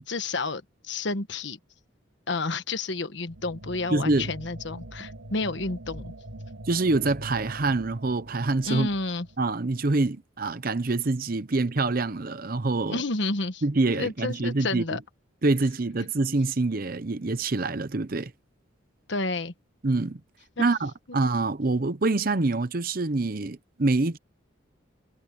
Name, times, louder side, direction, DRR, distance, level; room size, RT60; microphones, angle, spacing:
voice 1, 0.1-1.6 2.3-6.1 8.6-9.3 12.8-13.6 13.9-15.0 19.1-19.5 20.6-20.7, left 3 dB, 65° left, 1.2 m, -30 dB
sound 1, 3.3-10.0, right 1 dB, 85° right, 3.5 m, -43 dB
voice 2, 3.9-4.3 6.7-8.9 9.4-13.0 13.6-14.8 15.4-18.3 19.8-20.2 20.6-24.2, right 3 dB, 45° right, 0.8 m, -25 dB
head